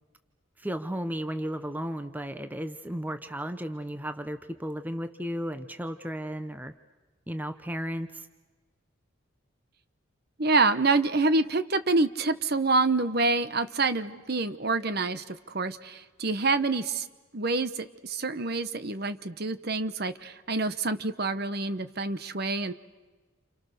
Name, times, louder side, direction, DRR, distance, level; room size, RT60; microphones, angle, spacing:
voice 1, 0.6-6.7 7.3-8.3, equal, 10° right, 9 dB, 0.8 m, -34 dB
voice 2, 10.4-17.1 17.3-22.7, right 3 dB, 45° right, 12 dB, 1.0 m, -27 dB
29.5 x 28.5 x 6.6 m, 1.3 s
head